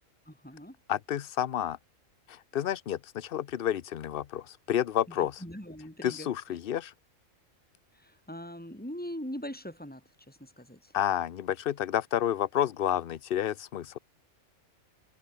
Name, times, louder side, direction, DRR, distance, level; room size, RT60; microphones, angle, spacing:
voice 1, 0.2-0.8 5.1-6.6 7.9-11.0, equal, 5° left, 6.8 m, -42 dB
voice 2, 0.9-1.8 2.3-5.4 6.0-6.9 10.9-14.0, left 10 dB, 50° left, 0.8 m, -30 dB
open air
omnidirectional pair, 1.4 m